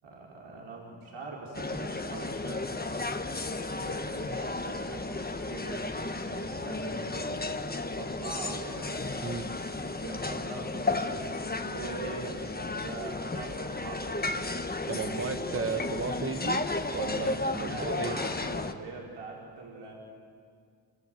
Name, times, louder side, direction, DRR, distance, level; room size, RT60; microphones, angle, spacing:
voice 1, 0.0-2.7 3.5-8.9 9.9-14.4 15.0-15.7 17.6-19.9, right 3 dB, 80° right, -3 dB, 4.8 m, -42 dB
sound 1, 1.5-18.7, left 3 dB, 20° left, 1.4 m, -33 dB
voice 2, 9.2-9.5 14.9-18.2, right 4 dB, 25° right, 7 dB, 1.4 m, -34 dB
27.0 x 26.0 x 7.9 m, 2.2 s
cardioid pair, 80°, 49 cm